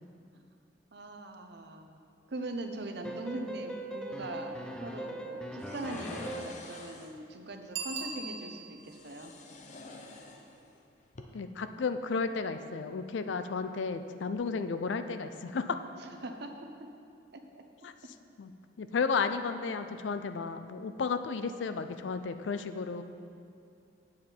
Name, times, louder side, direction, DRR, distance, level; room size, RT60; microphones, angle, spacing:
voice 1, 0.9-2.0 2.3-9.3 16.2-16.5, right 2 dB, 60° right, 5 dB, 0.7 m, -41 dB
sound 1, 3.0-6.7, right 1 dB, 5° left, 0.4 m, -40 dB
sound 2, 5.6-7.2 8.8-10.8 11.1-11.2, left 2 dB, 40° left, 0.7 m, -46 dB
Bicycle bell, 7.7-8.9 14.3-14.4, right 5 dB, 80° right, 1.3 m, -38 dB
voice 2, 11.3-15.8 17.8-17.9 18.4-18.5 18.8-23.0, left 5 dB, 80° left, 10 dB, 0.4 m, -33 dB
8.5 x 7.4 x 4.5 m, 2.5 s
head